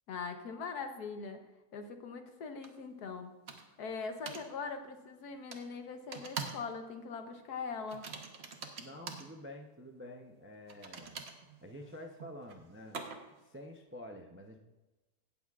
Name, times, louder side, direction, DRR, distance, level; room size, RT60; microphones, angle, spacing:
voice 1, 0.1-1.4 1.7-3.3 3.8-8.1, left 5 dB, 85° left, 6 dB, 1.5 m, -41 dB
sound 1, 2.6-2.7 3.5-3.8 4.3-4.5 5.5-5.6 6.1-6.7 6.9-7.2 7.9-9.3 10.7-13.4, right 5 dB, 45° right, 1.1 m, -44 dB
voice 2, 8.8-11.2 11.6-13.0 13.4-14.6, left 1 dB, 20° right, 2 dB, 0.3 m, -48 dB
17.5 x 7.1 x 2.4 m, 1.1 s
omnidirectional pair, 1.6 m